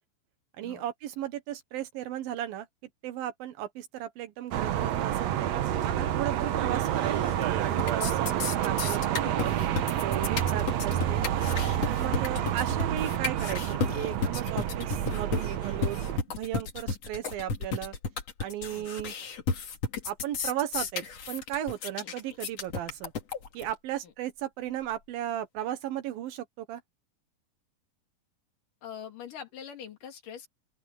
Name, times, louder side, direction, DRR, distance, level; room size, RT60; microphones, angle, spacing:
voice 1, 0.6-2.7 3.0-5.5 5.9-9.6 10.0-11.2 11.8-16.0 16.4-17.9 18.4-19.1 20.0-23.1 23.5-26.8, right 11 dB, 85° right, 3.1 m, -35 dB
sound 1, 4.5-16.2, right 11 dB, 70° right, 1.8 m, -29 dB
voice 2, 6.5-6.8 12.1-12.6 18.7-18.9 22.0-22.1 28.8-30.5, left 8 dB, 65° left, 4.2 m, -44 dB
sound 2, 7.0-7.5 7.7-23.7, left 5 dB, 50° left, 3.3 m, -33 dB
open air
omnidirectional pair, 4.1 m